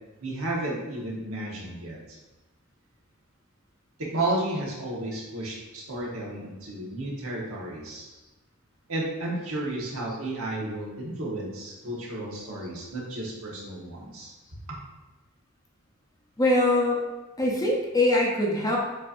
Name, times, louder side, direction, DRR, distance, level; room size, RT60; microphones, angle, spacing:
voice 1, 0.2-2.2 4.0-8.1 8.9-14.3, right 1 dB, 75° right, -4 dB, 1.3 m, -32 dB
voice 2, 16.4-17.0 17.4-18.8, left 1 dB, 20° left, -2 dB, 0.7 m, -23 dB
7.5 x 2.7 x 2.6 m, 1.1 s
head